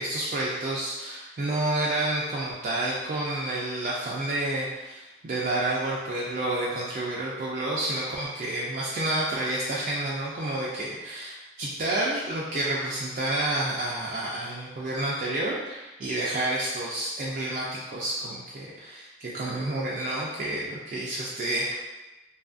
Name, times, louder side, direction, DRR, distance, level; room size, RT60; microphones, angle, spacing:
voice 1, 0.0-21.7, right 1 dB, 45° right, -5 dB, 0.3 m, -29 dB
2.6 x 2.3 x 2.4 m, 1.1 s
head